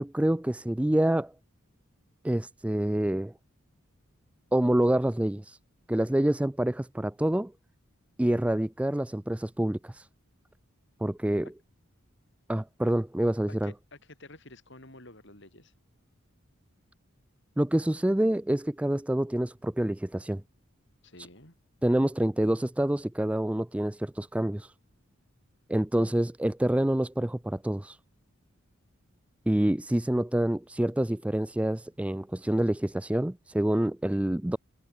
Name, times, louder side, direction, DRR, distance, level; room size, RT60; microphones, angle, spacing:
voice 1, 0.0-1.3 2.2-3.3 4.5-5.6 5.9-7.5 8.2-10.1 11.0-11.5 12.5-13.7 17.6-20.4 21.8-24.7 25.7-28.0 29.5-34.6, right 1 dB, 5° right, 0.3 m, -27 dB
voice 2, 13.6-15.7 21.0-21.5, left 2 dB, 55° left, 6.4 m, -50 dB
head